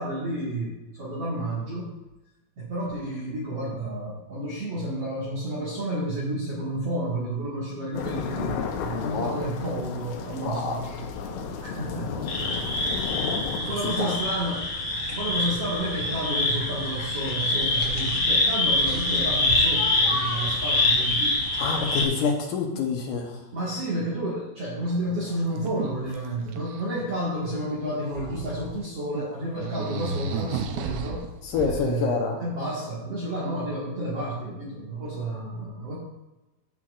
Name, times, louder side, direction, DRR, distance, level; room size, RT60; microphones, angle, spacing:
voice 1, 0.0-1.9 2.6-11.1 11.6-14.7 15.1-21.9 23.5-31.3 31.6-36.0, right 1 dB, 50° right, -7 dB, 2.2 m, -31 dB
sound 1, 7.9-13.6, left 6 dB, 90° left, 2.9 m, -33 dB
voice 2, 8.9-9.4 10.4-10.8 13.6-14.2 21.6-23.4 31.4-32.4, left 5 dB, 70° left, 1 dB, 2.1 m, -27 dB
sound 2, 12.3-22.0, left 2 dB, 50° left, 1.4 m, -25 dB
sound 3, 24.8-25.0 25.3-26.8 27.7-28.8 29.1-29.3 29.6-32.0, right 5 dB, 90° right, 2.8 m, -34 dB
15.0 x 5.9 x 2.5 m, 1.0 s
omnidirectional pair, 4.6 m